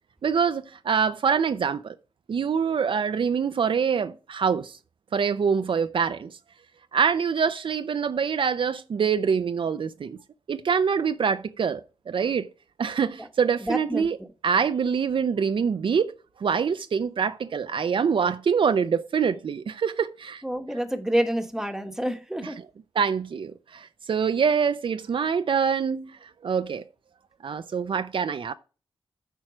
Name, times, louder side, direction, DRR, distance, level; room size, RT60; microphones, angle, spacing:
voice 1, 0.2-1.9 2.3-4.8 5.1-6.4 6.9-10.2 10.5-11.8 12.1-12.5 12.8-14.2 14.4-16.1 16.4-20.4 23.0-26.8 27.4-28.5, right 6 dB, 65° right, 0.5 m, -25 dB
voice 2, 13.6-14.1 20.4-22.6, equal, 5° right, 1.2 m, -28 dB
8.9 x 4.6 x 6.0 m
cardioid pair, 80°, 10 cm